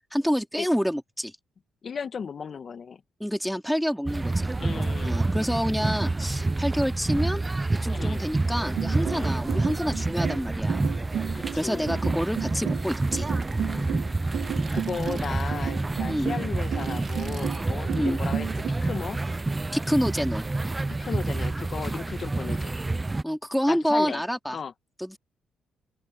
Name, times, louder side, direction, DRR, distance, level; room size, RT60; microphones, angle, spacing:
voice 1, 0.1-1.3 3.2-4.3 5.0-7.4 7.8-10.9 11.6-13.3 16.0-16.3 17.9-18.2 19.7-20.5 23.2-24.6 25.0-25.2, equal, ahead, 3.0 m, -27 dB
voice 2, 1.8-3.0 4.6-5.4 7.9-8.3 9.1-9.4 11.3-12.0 13.6-14.2 14.7-19.2 20.9-22.8 23.7-24.2 24.5-24.7, left 6 dB, 45° left, 1.9 m, -36 dB
sound 1, 4.0-23.2, right 2 dB, 20° right, 0.5 m, -28 dB
sound 2, 8.8-18.7, right 10 dB, 75° right, 3.2 m, -34 dB
sound 3, 12.3-15.6 15.9-16.1 16.5-17.6 17.9-18.3 18.6-19.5, right 6 dB, 50° right, 2.8 m, -48 dB
open air
cardioid pair, 90°, 0 cm